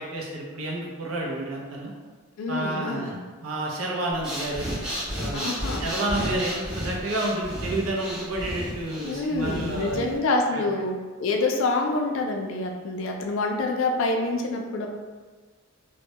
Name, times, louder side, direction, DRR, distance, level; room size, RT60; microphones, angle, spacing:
voice 1, 0.0-1.9 2.5-4.7 5.1-10.1 10.5-10.6, right 1 dB, 75° right, -2 dB, 0.5 m, -30 dB
voice 2, 2.4-3.2 5.3-5.9 9.0-14.9, left 2 dB, 65° left, 2 dB, 0.3 m, -27 dB
Breathing, 4.1-10.2, equal, ahead, 0.5 m, -33 dB
2.1 x 2.1 x 2.7 m, 1.4 s
head